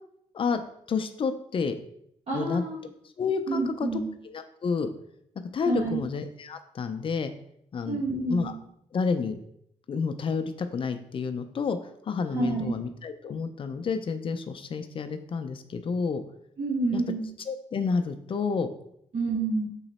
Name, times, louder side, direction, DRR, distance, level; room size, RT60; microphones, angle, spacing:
voice 1, 0.9-1.8 2.3-2.6 3.2-4.9 5.5-7.3 7.7-8.0 8.3-8.5 8.9-9.4 9.9-11.8 12.1-16.2 16.9-17.0 17.5-18.7, left 5 dB, 45° left, 8 dB, 0.5 m, -29 dB
voice 2, 2.3-2.7 3.5-4.0 5.6-6.0 7.8-8.5 12.3-12.8 16.6-17.2 19.1-19.7, right 3 dB, 55° right, -6 dB, 1.2 m, -28 dB
3.9 x 3.0 x 4.1 m, 0.72 s
cardioid pair, 90°, 12 cm